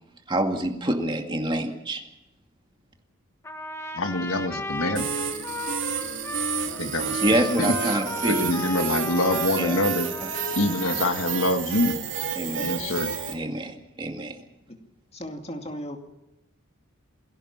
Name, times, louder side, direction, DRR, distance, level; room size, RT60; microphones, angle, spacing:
voice 1, 0.3-2.0 7.2-8.6 9.5-9.8 10.2-10.3 12.4-12.7 13.3-14.4, right 1 dB, 20° right, 3 dB, 2.2 m, -26 dB
Trumpet, 3.4-11.5, left 1 dB, 15° left, 1.5 m, -35 dB
voice 2, 4.0-5.1 6.8-7.2 7.6-7.7 8.3-10.1 10.5-12.0 12.6-13.1, left 2 dB, 75° left, 7 dB, 1.6 m, -25 dB
sound 1, 5.0-13.3, right 7 dB, 60° right, 3.0 m, -30 dB
voice 3, 15.1-16.0, equal, 30° left, 4 dB, 2.4 m, -36 dB
22.5 x 17.0 x 7.4 m, 0.91 s
head